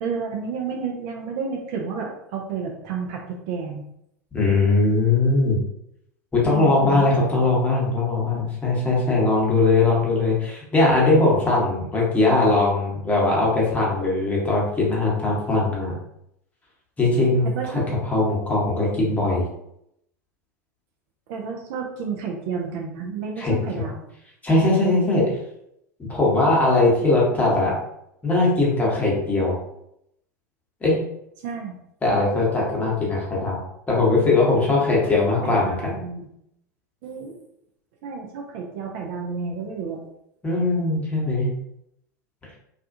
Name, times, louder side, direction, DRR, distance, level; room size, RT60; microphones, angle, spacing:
voice 1, 0.0-3.8 6.5-7.1 7.4-7.6 17.6-17.8 21.3-24.0 31.4-31.8 35.1-36.3 37.0-37.4 38.0-40.0, right 5 dB, 50° right, 0 dB, 0.5 m, -31 dB
voice 2, 4.3-5.6 6.3-15.9 17.0-17.5 18.0-19.4 23.4-23.5 24.4-25.2 26.1-27.7 28.2-29.6 30.8-31.0 32.0-33.6 33.9-35.9 40.4-41.5, left 2 dB, 15° left, -5 dB, 1.0 m, -20 dB
2.4 x 2.3 x 2.6 m, 0.78 s
figure-of-eight pair, 85°, 10 cm